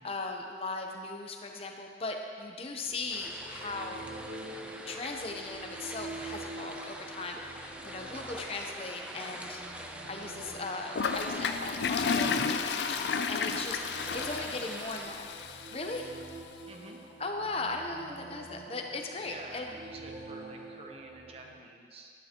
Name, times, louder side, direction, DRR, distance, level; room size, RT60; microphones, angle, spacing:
voice 1, 0.0-4.0 4.9-9.8 10.1-15.3 15.7-16.1 17.2-19.7, left 3 dB, 35° left, 3 dB, 0.8 m, -38 dB
sound 1, 2.7-21.5, right 2 dB, 65° right, 2.1 m, -47 dB
sound 2, 3.1-15.0, right 1 dB, 5° right, 0.4 m, -45 dB
Toilet flush, 11.0-16.0, left 5 dB, 80° left, 0.4 m, -32 dB
voice 2, 14.1-15.2 16.7-17.0 19.2-22.1, right 2 dB, 35° right, 2 dB, 0.8 m, -48 dB
11.0 x 10.5 x 3.0 m, 2.1 s
head